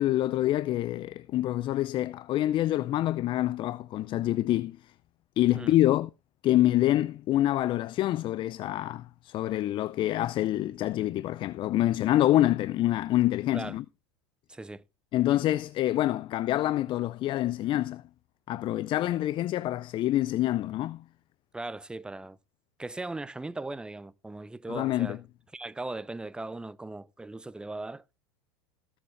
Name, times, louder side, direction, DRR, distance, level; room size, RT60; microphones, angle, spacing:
voice 1, 0.0-4.8 5.4-6.1 6.4-13.8 15.1-18.0 18.5-21.0 24.7-25.2, left 14 dB, 40° left, 0.5 m, -26 dB
voice 2, 14.5-14.8 21.5-22.4 22.8-25.2 25.5-28.0, right 2 dB, 5° right, 0.5 m, -38 dB
18.0 x 7.2 x 3.2 m
hypercardioid pair, 90°, 13 cm